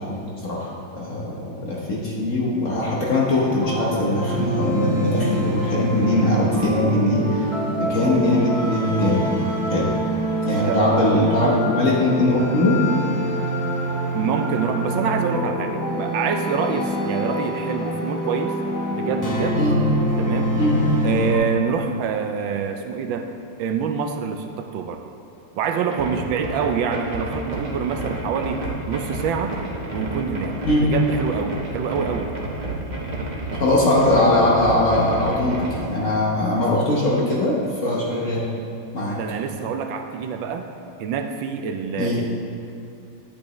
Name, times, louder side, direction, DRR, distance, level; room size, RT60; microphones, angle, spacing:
voice 1, 0.0-7.5 7.8-9.3 9.7-9.9 10.5-12.8 19.5-19.7 20.6-20.7 30.7-30.9 33.6-38.5 38.9-39.2 42.0-42.2, left 1 dB, 50° left, -4 dB, 1.1 m, -21 dB
sound 1, 3.4-21.4, right 1 dB, 30° left, 0.3 m, -25 dB
voice 2, 14.1-18.6 18.9-19.6 20.2-20.5 21.0-23.3 23.6-25.0 25.6-29.6 29.9-30.6 30.8-32.3 39.1-40.7 41.0-42.4, right 6 dB, 75° right, 5 dB, 1.2 m, -26 dB
sound 2, 25.9-35.8, right 2 dB, 30° right, 0.9 m, -30 dB
10.5 x 8.5 x 3.0 m, 2.6 s
omnidirectional pair, 2.2 m